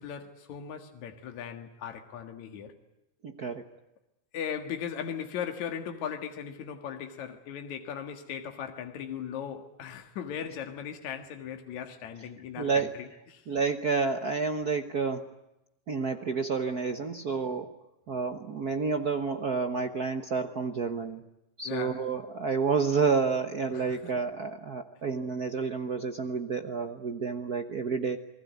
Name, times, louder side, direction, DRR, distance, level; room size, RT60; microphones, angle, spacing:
voice 1, 0.0-2.7 4.3-13.5 17.5-17.6 21.6-22.0 23.7-24.1, left 8 dB, 75° left, 3.0 m, -38 dB
voice 2, 3.2-3.7 12.2-12.3 12.6-13.1 13.5-15.3 15.9-17.7 18.1-21.2 21.6-28.2, right 5 dB, 65° right, 0.9 m, -30 dB
29.0 x 20.5 x 9.3 m
omnidirectional pair, 3.4 m